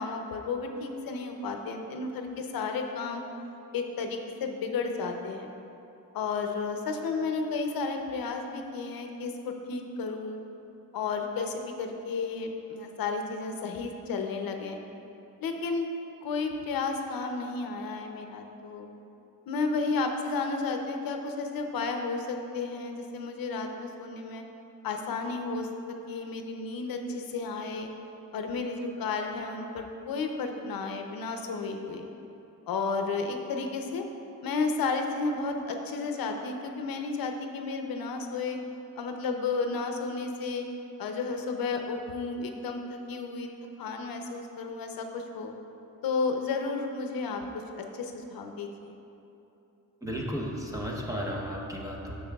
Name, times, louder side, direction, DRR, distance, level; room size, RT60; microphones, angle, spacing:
voice 1, 0.0-3.2 3.7-5.5 6.1-10.4 10.9-14.8 15.4-15.9 16.2-18.9 19.5-24.4 24.8-25.7 26.1-27.9 28.3-32.0 32.7-34.0 34.4-38.6 39.0-40.6 41.0-43.5 43.8-45.5 46.0-47.4 47.8-49.0, left 4 dB, 85° left, 4 dB, 0.7 m, -32 dB
voice 2, 50.0-52.2, equal, 10° right, -2 dB, 0.8 m, -34 dB
10.5 x 6.7 x 2.3 m, 2.9 s
wide cardioid pair, 140°, 34 cm